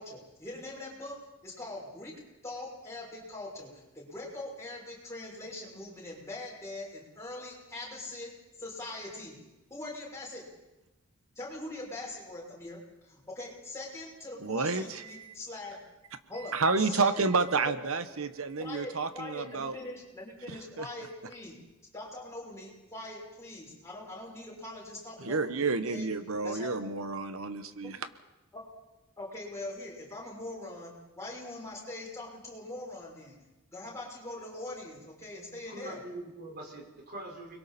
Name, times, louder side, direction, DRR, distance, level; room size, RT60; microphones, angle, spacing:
voice 1, 0.0-2.1 2.4-8.3 8.6-9.4 9.7-10.4 11.3-15.8 16.3-17.3 17.6-17.7 18.6-21.6 21.9-26.1 26.4-26.9 27.8-27.9 28.5-28.6 29.2-33.3 33.7-36.0, left 2 dB, 15° left, -4 dB, 6.6 m, -42 dB
voice 2, 14.4-14.8 15.1-15.2 16.5-19.8 20.8-20.9 25.2-28.0, right 4 dB, 70° right, 10 dB, 1.1 m, -30 dB
voice 3, 35.7-37.6, right 1 dB, 45° right, 1 dB, 4.8 m, -43 dB
30.0 x 22.5 x 4.3 m, 1.0 s
head